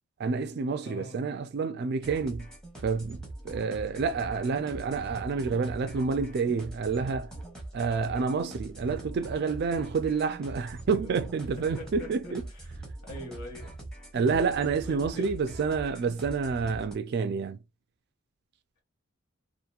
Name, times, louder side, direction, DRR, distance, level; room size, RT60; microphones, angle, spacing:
voice 1, 0.2-2.5 2.8-7.3 7.7-12.4 14.1-17.6, right 5 dB, 50° right, 0.3 m, -29 dB
voice 2, 0.8-1.2 10.9-11.1 11.6-12.3 13.0-13.7 14.8-15.4, left 1 dB, 75° left, 1.3 m, -43 dB
sound 1, 2.0-17.0, right 2 dB, 5° left, 0.9 m, -42 dB
2.8 x 2.5 x 2.3 m
head